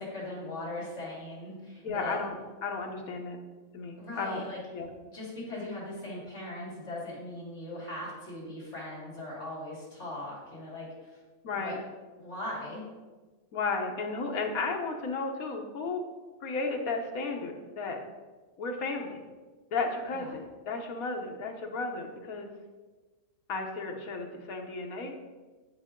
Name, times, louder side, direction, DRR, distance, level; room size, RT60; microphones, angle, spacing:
voice 1, 0.0-2.2 4.0-4.6 5.0-11.2 11.5-11.7 12.1-12.8 20.1-20.3, left 1 dB, 55° left, -6 dB, 3.2 m, -39 dB
voice 2, 1.8-2.3 2.6-3.4 3.7-4.4 4.7-4.9 11.4-11.8 13.5-16.0 16.4-18.0 18.6-19.2 19.7-22.5 23.5-25.1, left 3 dB, 85° left, 2 dB, 1.5 m, -33 dB
10.5 x 5.4 x 3.7 m, 1.3 s
omnidirectional pair, 1.4 m